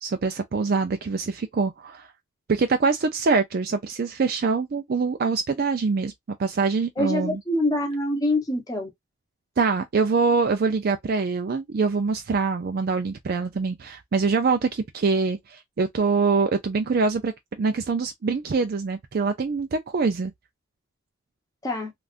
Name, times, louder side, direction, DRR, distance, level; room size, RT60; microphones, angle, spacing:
voice 1, 0.0-2.1 2.5-6.1 6.4-7.4 9.6-17.3 17.6-20.3, right 4 dB, 50° right, 0.4 m, -24 dB
voice 2, 7.0-8.9 21.6-21.9, left 1 dB, 20° left, 0.9 m, -25 dB
3.4 x 2.4 x 2.4 m
head